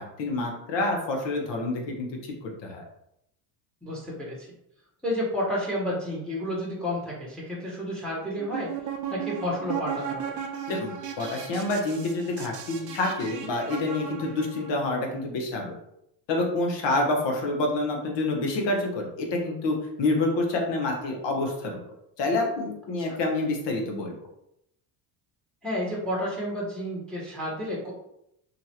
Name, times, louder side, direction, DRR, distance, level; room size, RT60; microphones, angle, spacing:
voice 1, 0.0-2.8 10.7-15.7 16.3-21.8 22.2-24.1, left 2 dB, 55° left, 1 dB, 1.0 m, -28 dB
voice 2, 3.8-4.5 5.0-8.7 9.1-10.4 16.9-17.0 23.0-23.2 25.6-27.9, left 1 dB, ahead, -4 dB, 1.1 m, -31 dB
sound 1, 8.4-14.7, right 8 dB, 40° right, 0.6 m, -36 dB
2.9 x 2.5 x 2.8 m, 0.79 s
hypercardioid pair, 75°, 50 cm